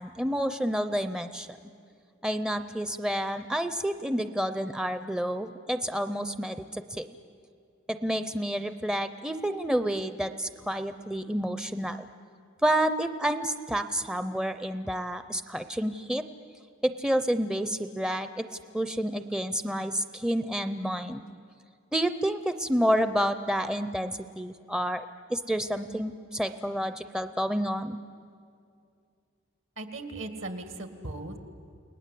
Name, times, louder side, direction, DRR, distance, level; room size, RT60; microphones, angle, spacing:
voice 1, 0.0-1.5 2.2-7.1 7.9-12.1 12.6-16.2 16.8-18.5 18.7-21.2 21.9-28.0, equal, 5° right, 10 dB, 0.6 m, -29 dB
voice 2, 29.8-31.4, right 2 dB, 70° right, 8 dB, 2.2 m, -38 dB
29.5 x 19.5 x 8.4 m, 2.4 s
head